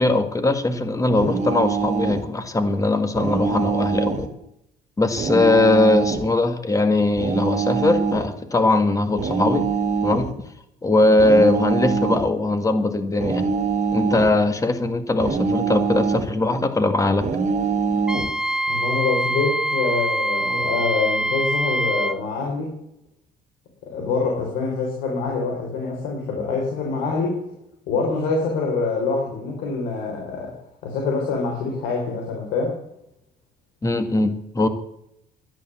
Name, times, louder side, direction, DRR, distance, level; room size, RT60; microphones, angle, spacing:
voice 1, 0.0-4.3 5.0-9.6 10.0-10.3 10.8-13.5 13.9-17.3 33.8-34.7, left 2 dB, 20° left, 9 dB, 1.9 m, -20 dB
sound 1, 1.2-2.3 3.1-4.3 5.2-6.3 7.2-8.3 9.2-10.3 11.2-12.3 13.2-14.3 15.2-16.3 17.2-18.3, right 5 dB, 45° right, 1.9 m, -24 dB
Wind instrument woodwind instrument, 18.1-22.2, right 1 dB, 5° right, 0.6 m, -24 dB
voice 2, 18.7-22.7 23.8-27.4 27.9-30.5 30.8-32.8, left 4 dB, 85° left, 0 dB, 3.8 m, -25 dB
12.0 x 10.0 x 7.3 m, 0.79 s
cardioid pair, 110°, 17 cm